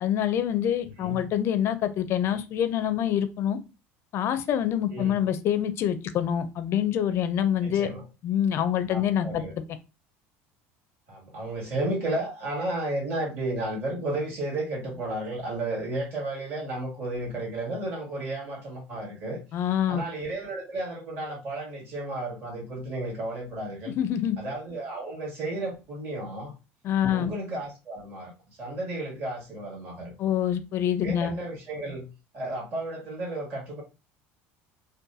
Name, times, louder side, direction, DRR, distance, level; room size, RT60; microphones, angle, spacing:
voice 1, 0.0-3.6 4.1-7.9 8.2-9.4 19.5-20.0 24.0-24.4 26.8-27.3 30.2-31.3, left 10 dB, 45° left, 11 dB, 0.4 m, -26 dB
voice 2, 0.8-1.2 4.9-5.2 7.6-8.0 8.9-9.5 11.1-19.4 19.9-23.9 24.4-26.5 27.1-28.3 28.6-30.1 31.0-32.1 32.3-33.8, right 2 dB, 40° right, -2 dB, 1.8 m, -33 dB
3.9 x 2.1 x 2.6 m, 0.29 s
cardioid pair, 135°, 6 cm